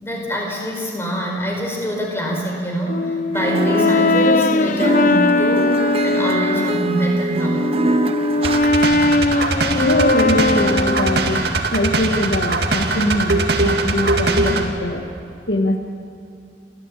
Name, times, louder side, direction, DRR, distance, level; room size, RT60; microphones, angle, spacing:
voice 1, 0.0-5.8 6.0-7.7, equal, 15° left, 0 dB, 4.6 m, -24 dB
Brass instrument, 2.9-6.9 7.4-11.5, left 2 dB, 45° left, 0.6 m, -19 dB
sound 1, 3.3-8.9, right 2 dB, 30° right, 0.7 m, -23 dB
sound 2, 8.4-14.7, right 2 dB, 65° right, 2.2 m, -21 dB
voice 2, 9.7-11.4 11.7-15.1 15.5-15.8, left 1 dB, 70° left, 2 dB, 1.7 m, -22 dB
28.5 x 15.0 x 8.5 m, 2.6 s
head